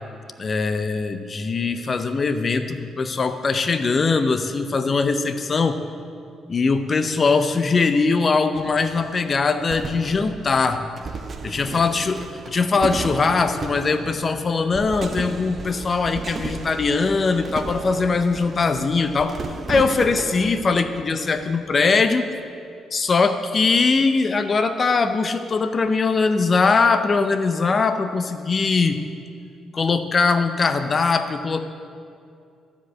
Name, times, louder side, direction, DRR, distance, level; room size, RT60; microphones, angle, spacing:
voice 1, 0.4-5.8 6.5-10.8 11.4-19.4 19.7-22.2 22.9-29.0 29.7-31.6, left 4 dB, 40° left, 9 dB, 0.6 m, -21 dB
sound 1, 8.5-22.1, right 4 dB, 45° right, 0.7 m, -35 dB
12.5 x 5.1 x 8.1 m, 2.4 s
cardioid pair, 90°, 0 cm